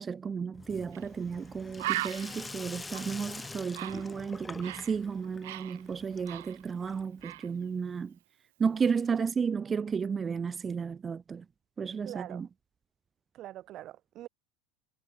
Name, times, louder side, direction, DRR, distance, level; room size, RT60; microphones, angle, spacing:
voice 1, 0.0-8.1 8.6-11.4 11.8-12.5, right 6 dB, 25° right, 1.1 m, -33 dB
Sink (filling or washing), 0.5-7.3, left 3 dB, 15° left, 6.2 m, -45 dB
Bird, 0.9-1.1 1.4-1.5 1.8-5.0 5.2-6.9 7.2-7.5, right 17 dB, 75° right, 0.7 m, -38 dB
voice 2, 12.0-12.4 13.3-14.3, right 14 dB, 50° right, 1.6 m, -43 dB
hypercardioid pair, 90°, 0 cm